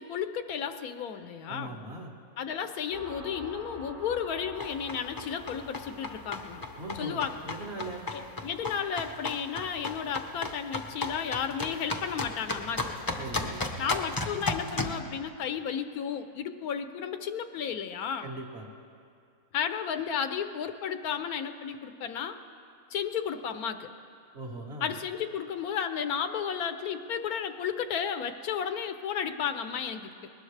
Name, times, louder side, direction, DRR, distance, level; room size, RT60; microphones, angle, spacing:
voice 1, 0.0-1.8 2.4-6.6 7.0-7.4 8.1-12.8 13.8-18.3 19.5-22.4 22.9-23.9 24.8-30.3, left 7 dB, 75° left, 9 dB, 1.2 m, -33 dB
voice 2, 1.5-2.1 6.8-7.2 7.5-8.1 13.2-13.6 18.2-18.7 24.3-24.9, right 2 dB, 45° right, -1 dB, 1.9 m, -39 dB
sound 1, 2.9-12.2, equal, 65° right, 5.1 m, -49 dB
sound 2, 4.6-15.0, left 2 dB, 20° left, 0.6 m, -35 dB
20.5 x 19.0 x 3.3 m, 2.4 s
omnidirectional pair, 1.6 m